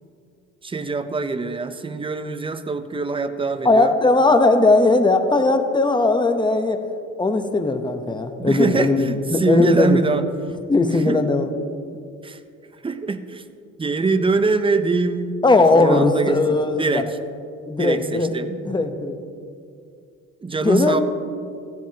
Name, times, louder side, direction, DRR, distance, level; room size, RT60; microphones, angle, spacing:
voice 1, 0.6-3.9 8.4-10.3 11.0-11.2 12.2-12.4 12.8-13.4 13.8-15.4 15.8-17.1 17.8-18.6 20.4-21.0, right 4 dB, 15° right, 11 dB, 0.6 m, -23 dB
voice 2, 3.6-6.8 7.2-10.0 10.7-11.5 15.4-17.0 17.7-18.3 18.6-19.2 20.6-21.0, left 3 dB, 15° left, 6 dB, 0.9 m, -18 dB
15.0 x 10.5 x 2.9 m, 2.4 s
cardioid pair, 90°, 30 cm